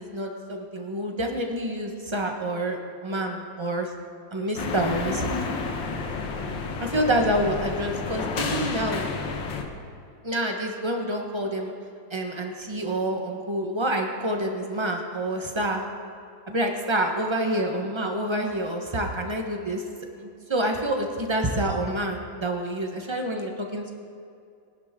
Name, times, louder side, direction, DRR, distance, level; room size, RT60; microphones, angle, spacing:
voice 1, 0.0-3.9 4.3-5.4 6.8-9.1 10.2-11.7 12.1-15.8 16.5-19.8 20.2-23.9, right 1 dB, 20° right, 2 dB, 0.9 m, -27 dB
sound 1, 4.6-9.6, left 4 dB, 75° left, 1.8 m, -30 dB
20.0 x 11.0 x 3.7 m, 2.4 s
omnidirectional pair, 2.1 m